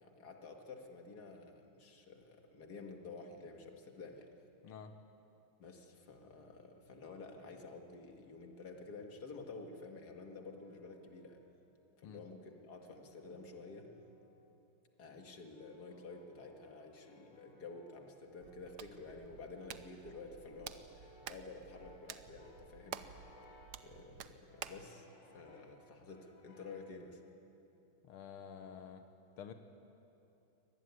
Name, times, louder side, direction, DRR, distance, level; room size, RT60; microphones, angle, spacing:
voice 1, 0.0-4.3 5.6-11.4 12.0-13.9 15.0-23.3 23.8-25.1 25.3-27.2, left 3 dB, 50° left, 3 dB, 2.5 m, -51 dB
Brass instrument, 10.0-11.7 12.5-14.5 15.2-23.9 24.4-25.8 26.1-27.0, left 2 dB, 75° left, 4.9 m, -64 dB
Hands, 18.4-24.9, right 9 dB, 60° right, 1.2 m, -51 dB
voice 2, 28.0-29.1 29.4-29.5, left 7 dB, 90° left, 7 dB, 2.0 m, -49 dB
24.0 x 19.0 x 9.7 m, 2.9 s
omnidirectional pair, 2.3 m